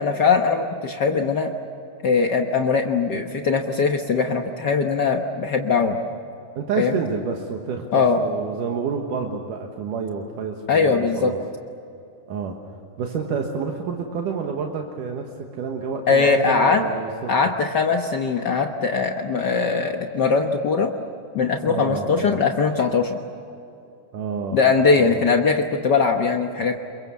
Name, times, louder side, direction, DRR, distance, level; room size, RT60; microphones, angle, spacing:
voice 1, 0.0-1.5 2.0-6.0 6.8-6.9 7.9-8.2 10.7-11.3 16.1-16.8 17.3-20.9 21.3-23.2 24.5-26.8, left 5 dB, 90° left, 4 dB, 0.9 m, -20 dB
voice 2, 6.6-11.4 12.3-12.6 13.0-15.3 15.6-17.5 21.7-22.4 24.1-24.6 25.0-25.3, right 5 dB, 75° right, 2 dB, 3.0 m, -29 dB
28.0 x 23.0 x 7.1 m, 2.7 s
omnidirectional pair, 3.7 m